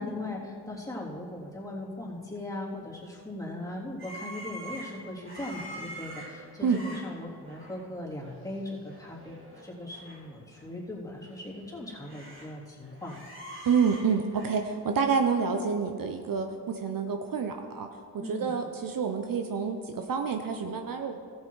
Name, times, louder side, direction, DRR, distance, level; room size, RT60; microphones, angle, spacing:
voice 1, 0.0-13.2 18.2-18.6, left 1 dB, 10° left, -6 dB, 3.3 m, -39 dB
sound 1, 4.0-7.9 8.2-8.5 8.7-10.2 10.5-10.6 11.2-12.5 12.8-14.6, right 1 dB, 30° right, 2.5 m, -45 dB
voice 2, 13.6-17.9 18.3-21.1, right 5 dB, 55° right, 5 dB, 0.8 m, -28 dB
14.0 x 7.5 x 4.7 m, 2.3 s
cardioid pair, 60°, 41 cm